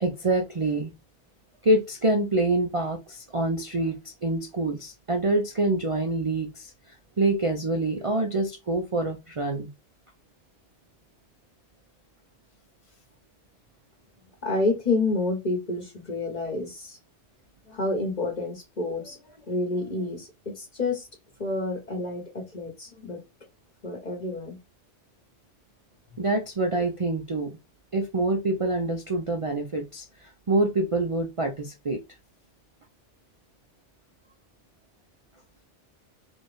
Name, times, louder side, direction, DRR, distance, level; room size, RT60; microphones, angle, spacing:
voice 1, 0.0-0.9 1.6-9.7 26.2-27.6 27.9-32.0, right 2 dB, 40° right, 0.5 m, -26 dB
voice 2, 14.4-17.0 17.7-21.0 21.4-23.2 23.8-24.6, left 2 dB, 35° left, 1.3 m, -29 dB
4.1 x 2.5 x 3.3 m
omnidirectional pair, 1.2 m